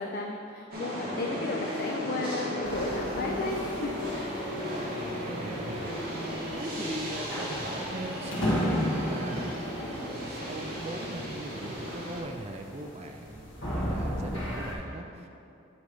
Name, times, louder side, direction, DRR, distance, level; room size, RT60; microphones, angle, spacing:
voice 1, 0.0-4.5, left 3 dB, 45° left, 1 dB, 0.4 m, -34 dB
sound 1, 0.7-12.2, equal, 45° right, 1.3 m, -35 dB
sound 2, 2.6-14.7, equal, 65° left, 1.5 m, -35 dB
voice 2, 4.5-8.8 9.0-15.3, right 2 dB, 30° right, 3 dB, 0.4 m, -40 dB
9.3 x 3.2 x 4.8 m, 2.6 s
head